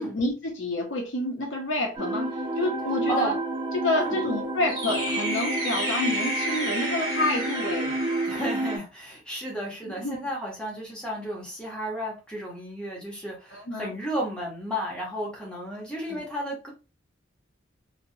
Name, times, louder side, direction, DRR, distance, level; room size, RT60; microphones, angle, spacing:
voice 1, 0.0-2.3 2.6-3.4 3.7-8.0 9.8-10.2 13.5-13.9 16.1-16.2, left 2 dB, 70° left, 0.9 m, -29 dB
sound 1, 2.0-8.8, right 1 dB, 20° right, 0.8 m, -28 dB
voice 2, 8.2-16.7, equal, 5° left, 1.0 m, -33 dB
3.0 x 2.3 x 2.7 m
head